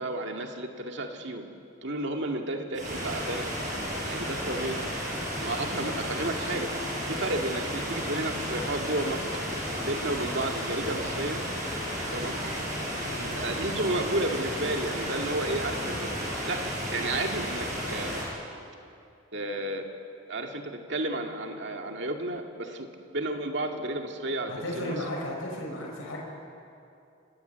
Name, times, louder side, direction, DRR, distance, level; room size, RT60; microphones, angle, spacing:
voice 1, 0.0-1.4 1.8-3.5 4.1-4.8 5.4-6.7 7.1-9.3 9.9-11.4 12.1-12.5 13.3-16.1 16.5-18.2 19.3-19.9 20.3-22.9 23.1-25.0, right 1 dB, 55° right, 3 dB, 2.3 m, -32 dB
sound 1, 2.7-18.3, equal, 40° right, 7.5 m, -33 dB
voice 2, 24.5-26.2, left 1 dB, 85° left, -1 dB, 5.4 m, -35 dB
29.0 x 19.0 x 8.2 m, 2.6 s
head